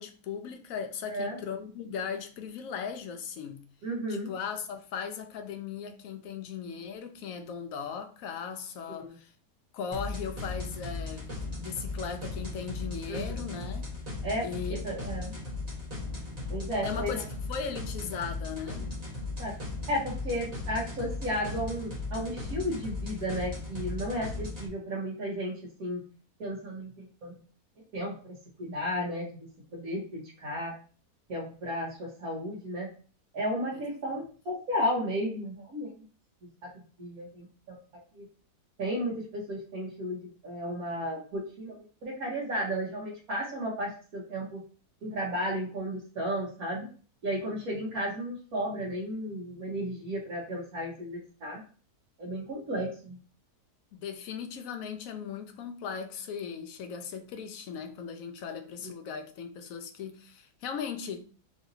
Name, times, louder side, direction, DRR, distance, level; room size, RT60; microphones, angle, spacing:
voice 1, 0.0-3.6 4.1-9.3 9.7-11.3 11.6-13.8 14.4-14.8 16.8-18.9 33.7-34.2 53.9-61.2, left 6 dB, 70° left, 0.9 m, -38 dB
voice 2, 3.8-4.3 8.9-9.2 13.1-13.2 14.2-14.4 14.8-15.3 16.5-17.2 19.4-19.5 19.9-25.5 25.8-26.0 26.4-27.4 27.9-28.1 28.6-30.7 31.3-32.9 33.3-35.9 37.0-37.7 38.1-38.2 38.8-44.6 45.0-46.9 47.2-51.6 52.2-53.2, equal, 65° right, 1.6 m, -33 dB
sound 1, 9.9-24.7, left 3 dB, 30° right, 1.0 m, -37 dB
4.8 x 2.6 x 2.7 m
omnidirectional pair, 1.7 m